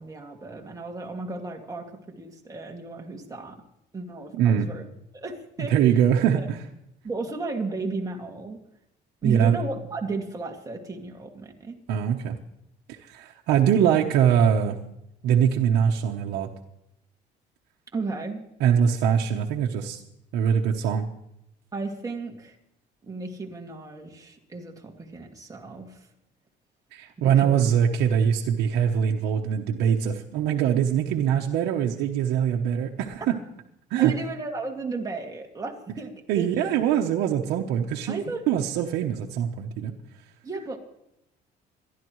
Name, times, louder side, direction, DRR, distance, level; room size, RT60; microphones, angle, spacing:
voice 1, 0.0-3.6 3.9-4.8 5.1-5.7 6.4-6.5 7.0-8.6 9.2-11.8 17.9-18.4 21.7-22.6 23.0-26.1 27.2-27.7 33.2-33.3 34.0-36.7 38.1-38.4 40.4-40.8, right 3 dB, 20° right, 1 dB, 2.2 m, -34 dB
voice 2, 4.3-4.7 5.7-6.6 9.2-9.6 11.9-12.4 12.9-14.7 15.2-16.5 18.6-20.0 20.3-21.1 26.9-33.4 33.9-34.1 36.3-38.2 38.5-39.9, right 8 dB, 85° right, 1 dB, 0.9 m, -23 dB
27.0 x 11.0 x 3.1 m, 0.82 s
cardioid pair, 110°, 17 cm